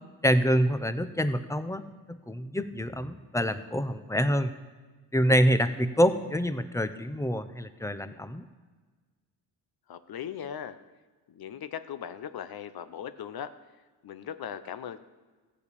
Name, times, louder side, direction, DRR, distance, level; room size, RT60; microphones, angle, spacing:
voice 1, 0.2-1.8 2.1-4.5 5.1-8.5, equal, 5° left, 11 dB, 0.6 m, -26 dB
voice 2, 9.9-10.8 11.3-13.5 14.0-15.0, left 9 dB, 55° left, 12 dB, 0.8 m, -38 dB
15.0 x 5.3 x 8.3 m, 1.4 s
cardioid pair, 105°, 43 cm